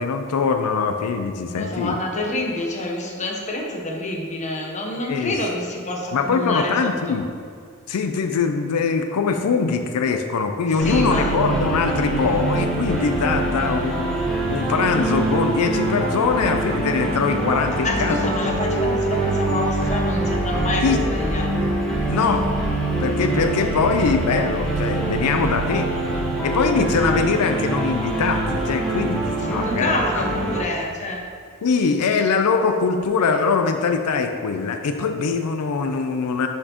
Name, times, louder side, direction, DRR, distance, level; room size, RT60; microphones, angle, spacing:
voice 1, 0.0-1.9 5.0-5.3 6.1-7.3 7.9-18.5 20.8-21.0 22.1-22.5 23.0-25.9 26.4-29.9 31.6-36.5, left 5 dB, 90° left, 6 dB, 0.4 m, -22 dB
voice 2, 1.5-7.2 10.7-11.4 17.8-21.5 29.4-31.2, left 1 dB, 35° left, 0 dB, 0.9 m, -27 dB
sound 1, 10.8-30.6, right 2 dB, 5° left, 1.2 m, -24 dB
10.5 x 4.3 x 2.9 m, 2.3 s
head